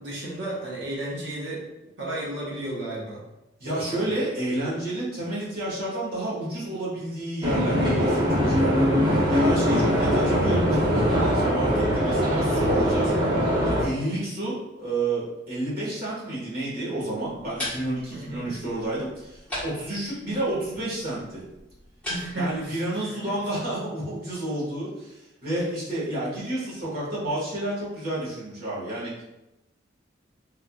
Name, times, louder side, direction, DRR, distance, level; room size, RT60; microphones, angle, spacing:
voice 1, 0.0-1.6 2.0-3.2 3.6-4.1 9.6-9.9 18.1-18.5 22.1-22.8 23.0-23.3 25.6-25.7, right 1 dB, 65° right, -6 dB, 1.1 m, -33 dB
voice 2, 3.6-13.1 13.6-21.4 22.3-29.2, right 1 dB, 50° right, -8 dB, 1.4 m, -30 dB
sound 1, 7.4-13.8, equal, 25° right, 0.6 m, -22 dB
sound 2, 17.2-22.6, left 1 dB, 5° left, 1.1 m, -39 dB
3.4 x 2.6 x 2.3 m, 0.93 s
head